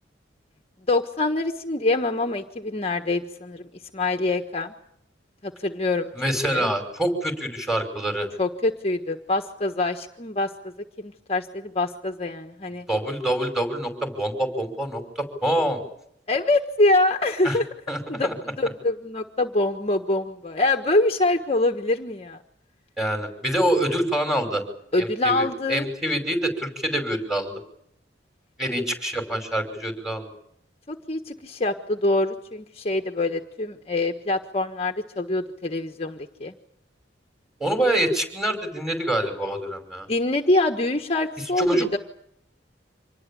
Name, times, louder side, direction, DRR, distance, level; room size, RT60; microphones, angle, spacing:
voice 1, 0.9-4.7 5.4-6.7 8.4-12.9 16.3-17.7 18.1-22.4 24.9-25.9 30.9-36.5 40.1-42.0, left 2 dB, 35° left, 5 dB, 1.4 m, -25 dB
voice 2, 6.2-8.3 12.9-15.8 17.4-17.6 17.9-18.3 23.0-24.6 25.0-27.6 28.6-30.3 37.6-40.1 41.6-41.9, right 1 dB, ahead, 5 dB, 5.6 m, -26 dB
26.5 x 20.0 x 8.7 m, 0.72 s
head